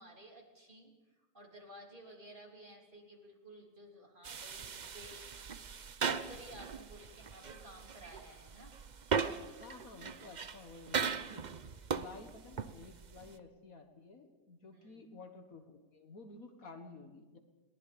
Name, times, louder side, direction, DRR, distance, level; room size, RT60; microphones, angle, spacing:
voice 1, 0.0-5.2 6.0-8.7 14.7-15.1, equal, 30° right, 0 dB, 3.4 m, -54 dB
sound 1, 4.2-13.4, right 6 dB, 50° right, 0.5 m, -39 dB
voice 2, 9.6-11.4 12.0-17.4, left 3 dB, 55° left, 6 dB, 1.9 m, -52 dB
21.5 x 19.0 x 7.0 m, 1.2 s
omnidirectional pair, 1.8 m